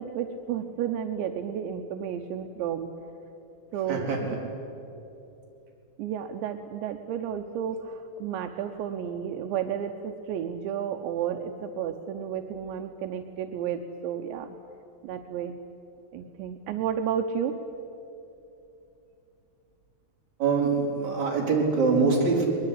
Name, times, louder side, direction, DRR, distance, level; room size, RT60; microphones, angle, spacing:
voice 1, 0.0-2.9 3.7-4.4 6.0-14.6 15.0-15.6 16.1-17.6 22.2-22.4, right 8 dB, 80° right, 6 dB, 3.1 m, -32 dB
voice 2, 3.9-4.2 20.4-22.5, right 4 dB, 40° right, -2 dB, 5.3 m, -24 dB
22.0 x 21.5 x 9.9 m, 2.9 s
omnidirectional pair, 5.1 m